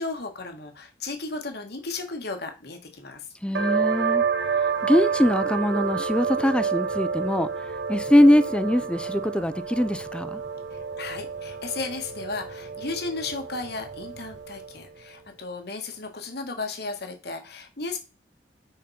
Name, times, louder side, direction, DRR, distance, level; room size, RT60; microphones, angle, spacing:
voice 1, 0.0-3.2 10.7-18.0, left 3 dB, 65° left, 1.7 m, -34 dB
voice 2, 3.4-4.2 4.8-7.5 7.9-10.4, left 1 dB, 5° left, 0.5 m, -22 dB
sound 1, 3.5-14.8, right 6 dB, 85° right, 0.9 m, -29 dB
7.6 x 5.3 x 4.3 m
head